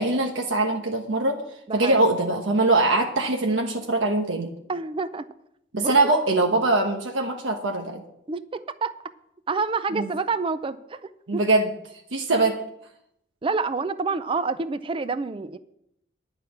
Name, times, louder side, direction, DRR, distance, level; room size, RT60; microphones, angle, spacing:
voice 1, 0.0-1.4 1.7-4.5 5.7-8.0 9.9-10.1 11.3-11.7 12.1-12.6, right 2 dB, 80° right, 3 dB, 1.1 m, -22 dB
voice 2, 1.7-2.0 4.7-5.3 5.8-6.2 8.3-9.0 9.5-11.4 13.4-15.6, right 4 dB, 25° right, 13 dB, 0.4 m, -28 dB
11.0 x 6.0 x 8.3 m, 0.77 s
head